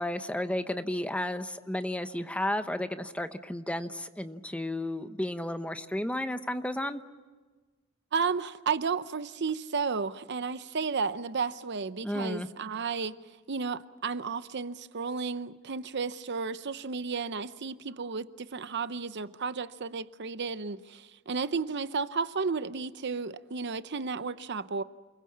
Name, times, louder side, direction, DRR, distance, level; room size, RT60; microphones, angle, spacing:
voice 1, 0.0-7.0 12.0-12.5, left 1 dB, 5° left, 1.0 m, -33 dB
voice 2, 8.1-13.2 13.5-24.8, right 5 dB, 55° right, 0.7 m, -33 dB
29.0 x 22.0 x 7.3 m
head